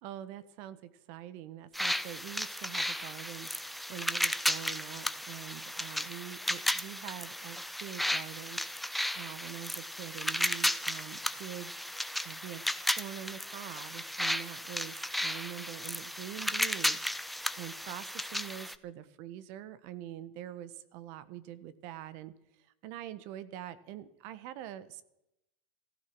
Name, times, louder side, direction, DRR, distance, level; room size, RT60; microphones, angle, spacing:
voice 1, 0.0-11.7 12.2-17.0 17.6-22.3 22.6-25.0, right 12 dB, 60° right, 15 dB, 1.4 m, -45 dB
sound 1, 1.7-18.7, equal, ahead, 0.8 m, -34 dB
15.0 x 14.5 x 6.2 m, 0.84 s
hypercardioid pair, 105°, 5 cm